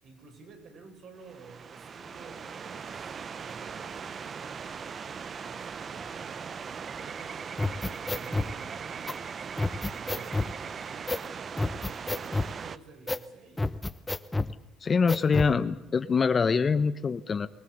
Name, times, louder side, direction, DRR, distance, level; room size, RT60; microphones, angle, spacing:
voice 1, 0.0-3.1 3.3-4.8 5.3-11.2 11.6-13.7, right 4 dB, 60° right, 1 dB, 7.5 m, -51 dB
sound 1, 1.2-12.8, right 6 dB, 45° right, 0.8 m, -39 dB
sound 2, 7.6-8.5 9.1-9.2 9.6-10.5 11.1-11.3 11.6-12.5 13.1-13.3 13.6-14.5 15.1-15.5, left 2 dB, 15° left, 1.0 m, -29 dB
voice 2, 14.8-17.5, left 5 dB, 35° left, 13 dB, 1.0 m, -24 dB
23.5 x 18.0 x 8.1 m, 0.87 s
supercardioid pair, 80°, 0 cm